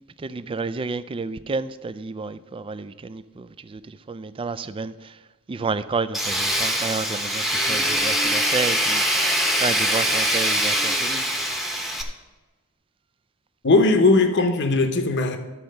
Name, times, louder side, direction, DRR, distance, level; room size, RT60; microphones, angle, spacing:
voice 1, 0.2-5.1 5.5-9.2 9.6-11.3, right 4 dB, 25° right, 0.3 m, -30 dB
Tools, 6.1-12.0, equal, ahead, 0.9 m, -23 dB
voice 2, 13.6-15.4, left 3 dB, 55° left, 0.9 m, -18 dB
12.5 x 4.4 x 6.5 m
head